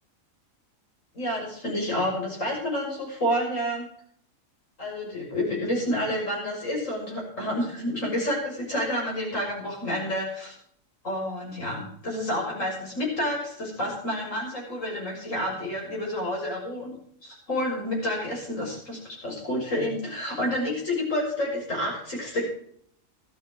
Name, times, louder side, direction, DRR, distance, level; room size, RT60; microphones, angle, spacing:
voice 1, 1.1-3.9 4.8-10.5 11.0-17.0 17.2-22.5, left 1 dB, 70° left, -2 dB, 6.9 m, -29 dB
14.0 x 12.0 x 4.6 m, 0.64 s
omnidirectional pair, 1.4 m